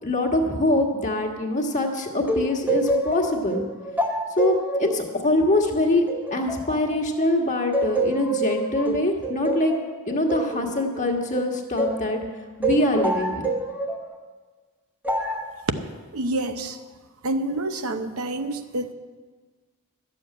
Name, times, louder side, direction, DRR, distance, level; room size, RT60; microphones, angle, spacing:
voice 1, 0.0-3.6 4.4-6.0 6.3-9.7 10.1-12.2 12.6-13.4, left 1 dB, 35° left, 2 dB, 1.5 m, -24 dB
sound 1, 2.3-7.3 7.7-12.1 12.6-14.1 15.0-15.5, right 1 dB, 5° right, 1.0 m, -27 dB
voice 2, 16.1-16.8 17.2-18.9, right 1 dB, 70° right, 8 dB, 0.8 m, -28 dB
12.5 x 7.1 x 8.6 m, 1.4 s
head